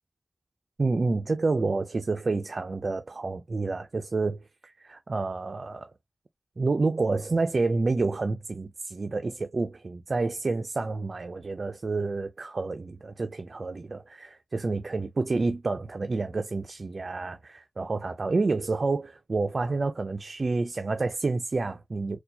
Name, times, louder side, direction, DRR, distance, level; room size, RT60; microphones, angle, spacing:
voice 1, 0.8-5.9 6.6-22.2, right 3 dB, 65° right, 0.4 m, -29 dB
4.2 x 2.2 x 2.7 m
wide cardioid pair, 65°, 0 cm